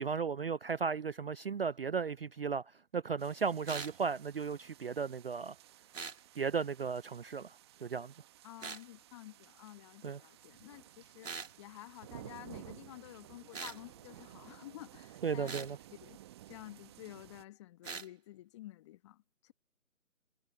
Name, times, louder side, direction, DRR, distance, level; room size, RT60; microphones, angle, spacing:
voice 1, 0.0-2.6 2.9-5.5 6.4-7.6 7.8-8.1 10.0-10.2 15.2-15.8, right 5 dB, 45° right, 0.5 m, -35 dB
sound 1, 3.2-17.4, right 13 dB, 20° right, 1.0 m, -55 dB
sound 2, 3.7-4.0 5.9-6.2 8.6-8.8 11.2-11.5 13.5-13.8 15.5-15.7 17.8-18.1, right 5 dB, 65° right, 2.3 m, -42 dB
voice 2, 8.4-16.2 16.5-19.5, left 16 dB, 20° left, 1.4 m, -51 dB
figure-of-eight pair, 145°, 41 cm